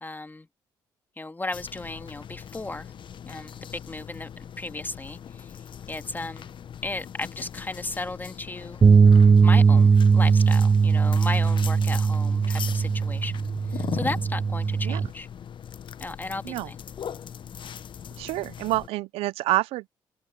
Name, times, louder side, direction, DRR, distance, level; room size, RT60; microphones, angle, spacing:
voice 1, 0.0-0.5 1.2-2.9 3.3-4.3 4.6-5.5 5.9-6.5 6.8-8.8 9.4-15.3 16.0-16.8, left 2 dB, 20° left, 2.2 m, -35 dB
sound 1, 1.5-18.9, left 8 dB, 55° left, 1.0 m, -40 dB
sound 2, 8.8-15.1, right 5 dB, 30° right, 0.5 m, -19 dB
voice 2, 18.2-19.9, right 18 dB, 80° right, 0.7 m, -27 dB
open air
hypercardioid pair, 50°, 10 cm